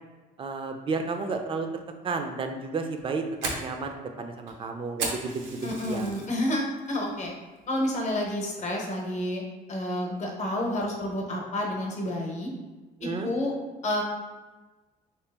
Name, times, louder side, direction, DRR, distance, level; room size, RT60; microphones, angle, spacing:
voice 1, 0.4-1.7 2.0-6.1 13.0-13.3, right 4 dB, 30° right, 5 dB, 0.4 m, -32 dB
Fire, 2.8-6.4 6.8-7.2 7.6-7.7 8.2-8.6, right 3 dB, 90° right, 0.7 m, -35 dB
voice 2, 5.6-7.3 7.7-9.4 9.7-12.5 13.2-13.5 13.8-14.0, left 1 dB, 45° left, 0 dB, 0.8 m, -29 dB
3.2 x 3.0 x 3.3 m, 1.2 s
cardioid pair, 110°, 17 cm